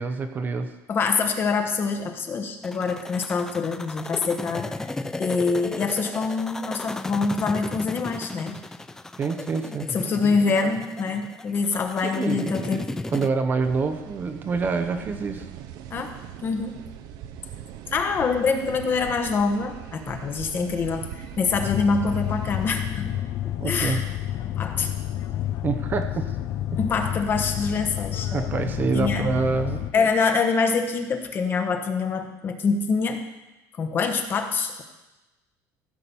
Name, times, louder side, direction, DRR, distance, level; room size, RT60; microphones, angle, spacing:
voice 1, 0.0-0.7 9.2-9.9 12.0-15.5 23.6-24.0 25.6-26.3 28.3-30.1, right 4 dB, 25° right, 7 dB, 0.7 m, -27 dB
voice 2, 0.9-4.9 5.2-8.6 9.9-12.8 15.9-16.1 16.4-16.8 17.9-23.2 23.4-24.0 24.6-24.9 26.8-28.3 28.9-29.3 29.9-33.2 33.7-34.8, left 4 dB, 30° left, 5 dB, 1.1 m, -25 dB
sound 1, 2.6-13.3, left 2 dB, 5° left, 0.3 m, -34 dB
sound 2, 13.6-22.7, right 10 dB, 60° right, 0.7 m, -41 dB
sound 3, 21.5-29.9, left 12 dB, 45° left, 0.6 m, -29 dB
15.0 x 5.8 x 6.9 m, 1.0 s
cardioid pair, 170°, 7 cm